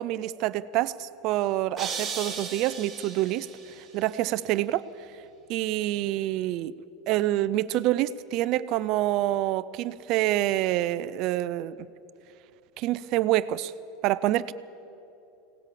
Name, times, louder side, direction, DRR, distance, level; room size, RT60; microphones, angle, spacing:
voice 1, 0.0-4.9 5.5-6.7 7.1-11.8 12.8-13.7 14.0-14.5, right 14 dB, 40° right, 16 dB, 0.4 m, -27 dB
sound 1, 1.8-3.9, right 5 dB, 10° right, 2.3 m, -36 dB
25.0 x 18.0 x 7.5 m, 2.9 s
supercardioid pair, 175°, 0 cm